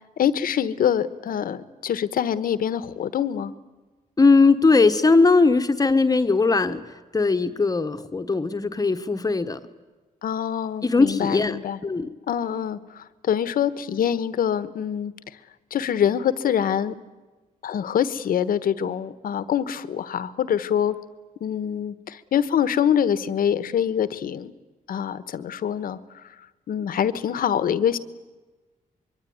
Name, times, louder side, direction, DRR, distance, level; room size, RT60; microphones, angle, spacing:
voice 1, 0.2-3.5 10.2-11.8 12.3-15.1 15.7-17.0 17.6-21.0 21.4-24.5 24.9-26.0 26.7-28.0, left 9 dB, 80° left, 15 dB, 1.3 m, -25 dB
voice 2, 4.2-6.8 7.1-9.6 10.8-12.1, left 3 dB, 25° left, 8 dB, 1.2 m, -19 dB
24.5 x 23.0 x 9.5 m, 1.2 s
cardioid pair, 105°, 15 cm